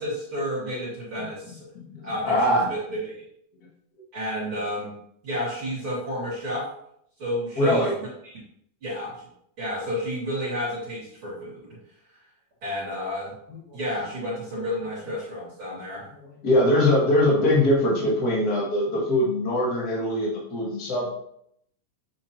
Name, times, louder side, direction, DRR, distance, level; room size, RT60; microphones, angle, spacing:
voice 1, 0.0-1.6 2.0-3.2 4.1-4.9 5.2-6.7 7.2-8.1 8.8-9.1 9.6-11.7 12.6-13.3 13.7-16.1, equal, 40° right, -8 dB, 3.5 m, -31 dB
voice 2, 1.7-2.7 3.9-4.0 7.6-7.9 16.4-21.1, left 1 dB, 30° left, -4 dB, 2.4 m, -22 dB
8.7 x 7.2 x 2.9 m, 0.72 s
omnidirectional pair, 3.7 m